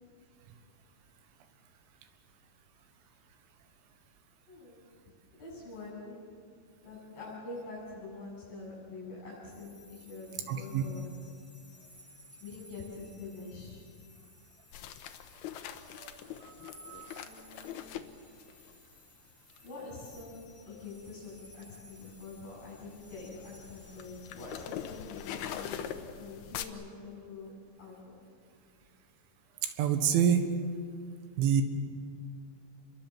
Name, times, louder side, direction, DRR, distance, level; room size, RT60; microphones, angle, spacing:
voice 1, 4.5-4.9 5.3-6.2 6.8-11.1 12.4-13.8 17.1-18.1 19.6-25.9 26.2-27.5 27.8-28.2, left 3 dB, 55° left, -7 dB, 9.0 m, -45 dB
sound 1, 9.4-26.0, left 1 dB, 30° left, 8.4 m, -58 dB
voice 2, 10.5-10.8 16.0-16.1 16.4-16.5 16.8-17.3 29.6-30.5 31.4-31.6, right 8 dB, 80° right, 8 dB, 3.8 m, -27 dB
sound 2, 14.7-18.8 19.5-19.7 20.2-26.6, left 9 dB, 70° left, 2.6 m, -43 dB
29.5 x 22.5 x 7.4 m, 2.2 s
omnidirectional pair, 5.5 m